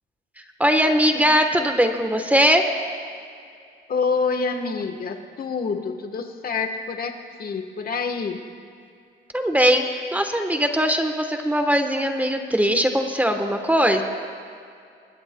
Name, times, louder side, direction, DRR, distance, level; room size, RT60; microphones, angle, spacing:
voice 1, 0.6-2.6 9.3-14.0, equal, 10° right, 5 dB, 1.1 m, -20 dB
voice 2, 3.9-7.1 7.4-8.4, left 4 dB, 50° left, 6 dB, 1.2 m, -27 dB
21.0 x 18.5 x 2.2 m, 2.4 s
cardioid pair, 90°, 20 cm